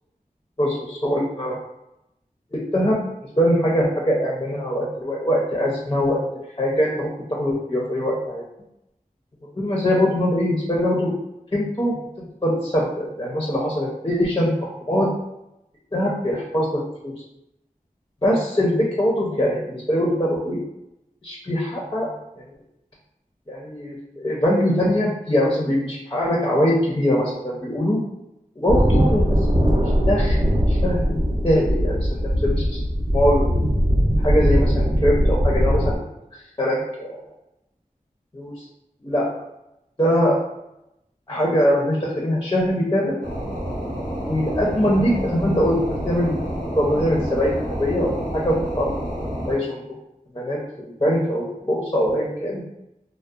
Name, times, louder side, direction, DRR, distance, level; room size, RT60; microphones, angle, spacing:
voice 1, 0.6-1.6 2.5-3.0 3.4-6.2 6.6-8.4 9.6-11.1 11.5-12.0 12.4-15.1 15.9-17.1 18.2-20.6 21.2-22.1 22.4-22.5 23.5-24.0 24.2-28.0 28.6-29.3 29.7-31.2 31.4-32.8 33.1-33.5 34.2-36.0 36.6-37.2 38.3-38.6 39.0-39.3 40.0-40.4 41.3-43.2 44.2-46.4 46.8-49.1 49.5-49.8 50.3-52.6, equal, 25° left, -4 dB, 0.5 m, -22 dB
sound 1, 28.7-36.0, equal, 40° right, 0.5 m, -20 dB
sound 2, 43.2-49.5, equal, 75° right, 0.9 m, -29 dB
2.6 x 2.0 x 2.3 m, 0.87 s
wide cardioid pair, 50°, 15 cm